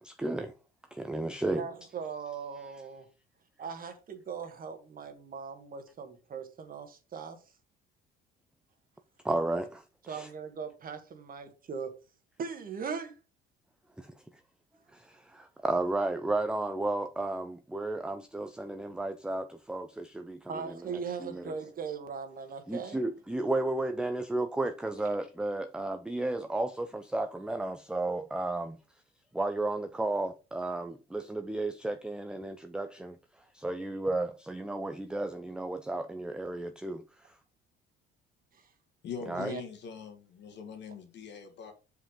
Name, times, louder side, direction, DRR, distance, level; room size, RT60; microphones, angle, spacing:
voice 1, 0.0-0.5 0.9-1.7 9.2-10.3 14.0-14.1 14.9-21.5 22.7-28.8 29.3-33.2 33.5-37.3 39.3-39.5, right 2 dB, 5° right, 0.6 m, -33 dB
voice 2, 1.6-3.1 3.6-7.4 10.1-11.9 12.4-13.2 20.5-23.0 38.5-38.7 39.3-39.6, right 6 dB, 45° right, 1.6 m, -39 dB
voice 3, 39.0-41.7, left 6 dB, 60° left, 1.9 m, -42 dB
5.7 x 5.0 x 4.9 m
supercardioid pair, 90°, 21 cm